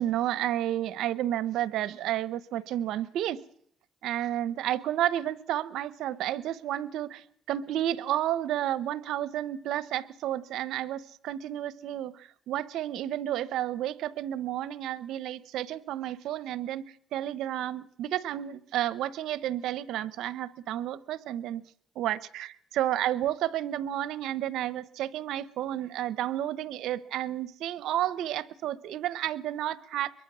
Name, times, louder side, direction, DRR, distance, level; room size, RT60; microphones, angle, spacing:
voice 1, 0.0-3.4 4.0-16.8 17.1-21.6 22.0-30.1, right 12 dB, 85° right, 1.0 m, -31 dB
24.0 x 22.0 x 6.3 m
cardioid pair, 90°, 0 cm